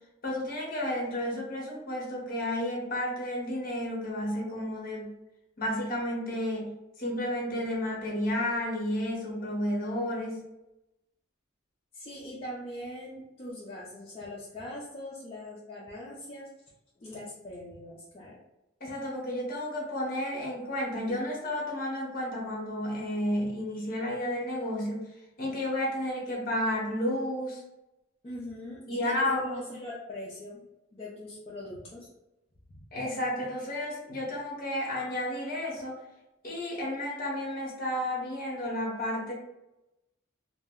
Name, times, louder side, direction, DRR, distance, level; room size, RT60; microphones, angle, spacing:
voice 1, 0.2-5.1 5.6-10.4 18.8-25.1 25.4-27.6 28.9-29.7 32.9-36.0 36.4-39.3, left 1 dB, 45° left, -2 dB, 0.8 m, -32 dB
voice 2, 11.9-16.5 17.0-18.4 28.2-30.7 30.9-32.1, left 1 dB, 30° left, -6 dB, 0.4 m, -41 dB
2.2 x 2.0 x 3.4 m, 0.94 s
head